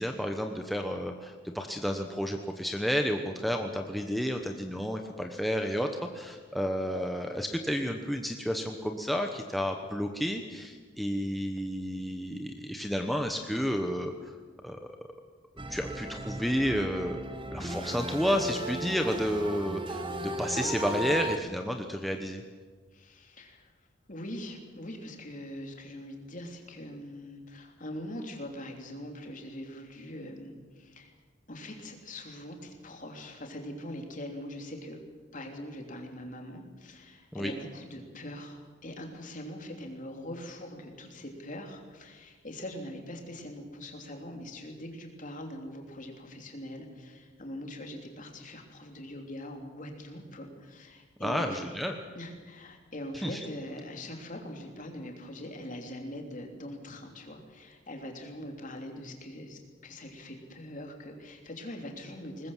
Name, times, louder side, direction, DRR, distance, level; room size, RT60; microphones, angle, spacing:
voice 1, 0.0-5.9 6.1-14.3 14.6-14.8 15.7-17.2 17.5-22.4 37.3-37.5 51.2-52.0 53.2-53.4, equal, ahead, 3 dB, 1.1 m, -31 dB
sound 1, 15.6-21.4, right 1 dB, 25° right, 1.4 m, -36 dB
voice 2, 22.9-23.7 24.1-31.1 31.5-35.0 35.3-51.6 52.1-62.5, left 1 dB, 40° left, 3 dB, 3.2 m, -42 dB
21.0 x 20.0 x 7.4 m, 1.5 s
head